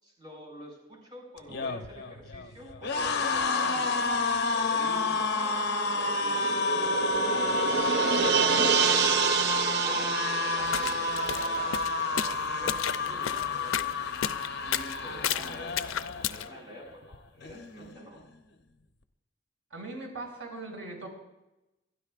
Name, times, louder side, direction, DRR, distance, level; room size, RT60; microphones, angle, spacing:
voice 1, 0.0-4.1 4.5-5.6 5.9-7.6 8.2-9.3 9.8-10.1 10.4-11.7 12.1-14.0 14.6-18.2, equal, 25° right, -2 dB, 5.6 m, -46 dB
sound 1, 1.4-16.6 16.9-17.2 17.4-18.2, left 3 dB, 55° left, 0.9 m, -30 dB
sound 2, 5.7-12.7 13.1-13.2, right 8 dB, 55° right, 0.5 m, -29 dB
sound 3, 10.6-16.5, left 9 dB, 85° left, 0.5 m, -34 dB
voice 2, 19.7-21.1, right 2 dB, 85° right, 0 dB, 5.4 m, -40 dB
28.0 x 12.5 x 2.5 m, 0.97 s
head